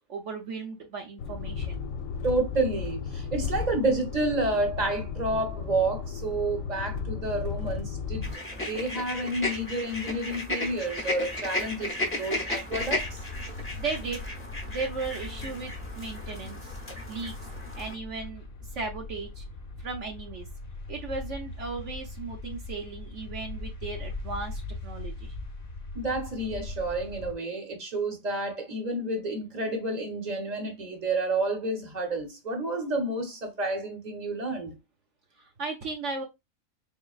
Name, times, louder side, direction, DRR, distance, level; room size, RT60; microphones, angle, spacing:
voice 1, 0.1-1.9 13.8-14.2 14.7-16.8 17.1-17.3 17.7-18.4 18.7-19.4 19.8-20.5 20.9-25.3 35.4-36.2, right 4 dB, 65° right, 1.0 m, -36 dB
sound 1, 1.2-8.3, left 6 dB, 75° left, 1.0 m, -34 dB
voice 2, 2.2-13.2 25.9-34.8, right 2 dB, 35° right, 1.0 m, -30 dB
sound 2, 8.2-18.0, left 2 dB, 10° left, 0.8 m, -35 dB
sound 3, 12.7-27.3, left 2 dB, 50° left, 0.9 m, -40 dB
3.8 x 3.6 x 2.3 m
omnidirectional pair, 1.4 m